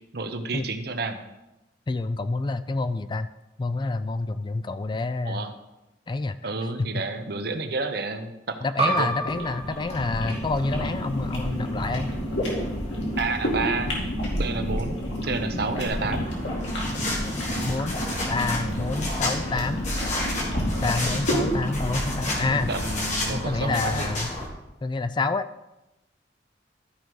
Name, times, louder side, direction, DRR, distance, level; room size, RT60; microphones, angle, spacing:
voice 1, 0.1-1.2 5.2-5.5 6.4-8.6 8.9-9.1 13.2-13.9 14.4-15.0 15.2-16.3 20.8-21.0 22.7-24.1, right 3 dB, 60° right, 7 dB, 0.8 m, -30 dB
voice 2, 1.9-3.3 3.6-5.4 6.1-6.5 6.8-7.0 8.6-12.1 17.7-18.0 18.3-19.8 20.8-22.7 23.3-24.3 24.8-25.5, left 3 dB, 25° left, 12 dB, 0.3 m, -28 dB
sound 1, 8.8-13.9, right 3 dB, 35° right, 2.0 m, -33 dB
sound 2, 9.0-24.2, equal, 90° left, 2.6 m, -30 dB
sound 3, 15.9-24.5, left 1 dB, 45° left, 2.1 m, -31 dB
13.0 x 5.2 x 4.7 m, 0.97 s
head